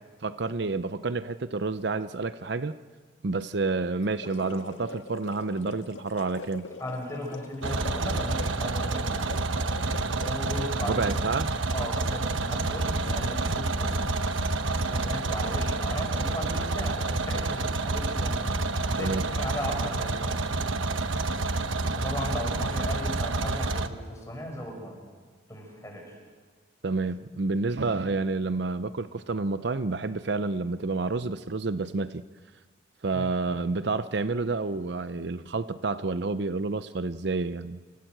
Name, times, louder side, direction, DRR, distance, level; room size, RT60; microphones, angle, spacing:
voice 1, 0.2-2.7 3.2-6.7 10.9-11.5 19.0-19.2 26.8-32.2 33.0-38.0, right 3 dB, 60° right, 12 dB, 0.6 m, -29 dB
sound 1, 4.0-10.8, left 3 dB, 75° left, 1.8 m, -43 dB
voice 2, 6.8-9.3 10.2-11.3 11.7-13.9 14.7-18.4 18.9-20.4 21.9-25.0 25.5-26.1 33.1-33.3, equal, 15° left, 1 dB, 6.5 m, -36 dB
sound 2, 7.6-23.9, right 3 dB, 80° right, 1.2 m, -28 dB
28.5 x 18.5 x 8.0 m, 1.5 s
head